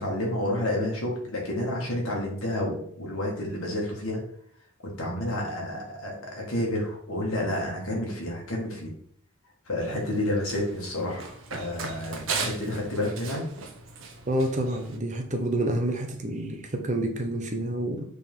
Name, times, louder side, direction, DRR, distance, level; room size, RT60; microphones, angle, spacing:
voice 1, 0.0-4.2 4.8-8.9 9.7-13.4, left 1 dB, 70° left, -2 dB, 2.1 m, -30 dB
Run, 9.8-15.0, right 4 dB, 65° right, 0.9 m, -37 dB
voice 2, 14.3-18.0, right 1 dB, 35° right, 4 dB, 0.8 m, -28 dB
6.6 x 3.8 x 3.8 m, 0.63 s
head